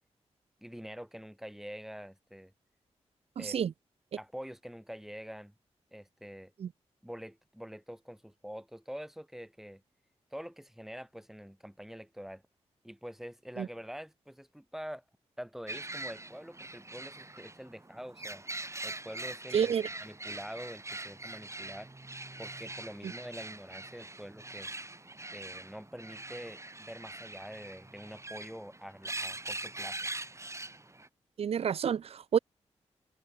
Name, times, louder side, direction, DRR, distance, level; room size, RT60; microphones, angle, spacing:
voice 1, 0.6-2.5 3.4-3.6 4.2-5.5 5.9-6.5 7.0-9.8 10.3-12.4 12.8-15.0 15.4-18.4 18.8-19.7 20.0-21.9 22.4-24.7 25.3-30.1, equal, 5° right, 6.2 m, -45 dB
voice 2, 3.4-3.7 6.6-6.7 13.6-13.7 19.5-19.9 31.4-32.4, right 8 dB, 55° right, 0.3 m, -29 dB
sound 1, 15.7-31.1, right 2 dB, 25° right, 3.0 m, -43 dB
cardioid pair, 55°, 12 cm